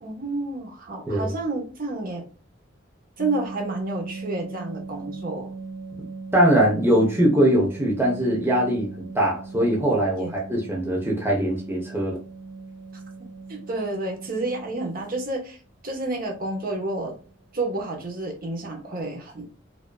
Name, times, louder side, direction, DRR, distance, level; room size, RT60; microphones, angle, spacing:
voice 1, 0.0-2.2 3.2-5.5 10.2-10.3 13.5-15.6 15.8-17.1 17.5-19.6, right 2 dB, 50° right, 1 dB, 1.2 m, -30 dB
sound 1, 3.2-15.3 17.1-17.3 17.6-17.8 18.1-18.3 18.6-18.9, right 3 dB, 75° right, 0.6 m, -39 dB
voice 2, 6.3-12.2, right 1 dB, 10° right, -3 dB, 1.0 m, -21 dB
5.1 x 2.9 x 2.3 m, 0.37 s
head